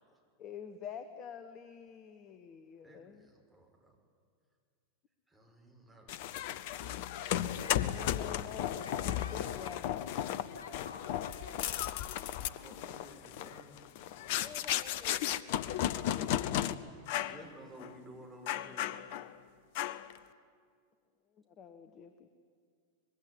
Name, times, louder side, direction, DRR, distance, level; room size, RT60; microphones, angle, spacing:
voice 1, 0.4-3.3 7.4-10.0 14.2-16.7 21.5-22.3, left 8 dB, 35° left, 10 dB, 1.3 m, -48 dB
voice 2, 2.8-3.9 5.3-6.1 12.3-13.8 17.3-19.0, right 1 dB, ahead, -1 dB, 5.4 m, -54 dB
sound 1, 6.1-16.7 17.1-17.4 17.8-17.9 18.5-19.3 19.8-20.2, left 12 dB, 50° left, 0.8 m, -35 dB
voice 3, 7.4-8.0 8.8-9.8 10.5-11.8, left 3 dB, 70° left, 2 dB, 4.3 m, -48 dB
24.5 x 21.5 x 9.9 m, 2.1 s
figure-of-eight pair, 90°, 0 cm